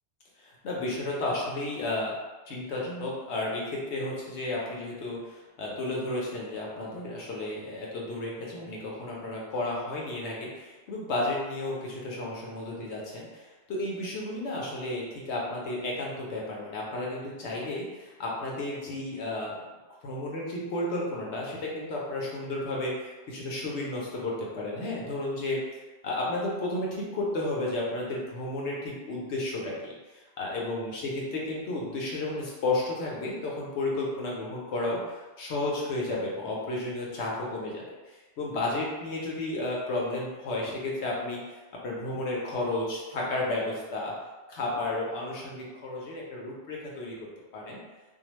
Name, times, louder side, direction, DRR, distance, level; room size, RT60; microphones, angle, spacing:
voice 1, 0.4-2.1 2.5-13.3 13.7-19.5 20.0-25.6 26.0-29.9 30.4-35.0 35.4-41.4 41.8-44.1 44.5-47.8, left 2 dB, 75° left, -3 dB, 1.0 m, -32 dB
2.6 x 2.0 x 3.0 m, 1.2 s
omnidirectional pair, 1.2 m